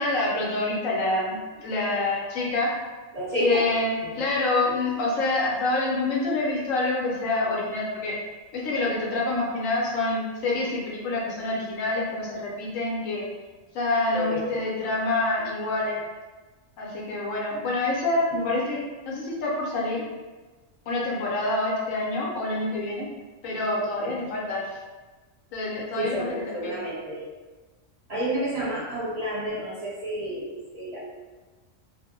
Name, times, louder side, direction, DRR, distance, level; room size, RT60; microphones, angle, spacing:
voice 1, 0.0-2.7 3.4-8.1 8.5-13.3 13.7-16.0 16.8-20.0 20.9-23.1 23.4-24.8 25.5-26.8, left 2 dB, 80° left, -4 dB, 1.1 m, -27 dB
voice 2, 3.1-3.6 4.0-4.2 14.1-14.4 24.0-24.1 26.0-27.2 28.1-31.0, right 1 dB, 30° right, -9 dB, 1.0 m, -30 dB
2.5 x 2.0 x 2.8 m, 1.3 s
omnidirectional pair, 1.3 m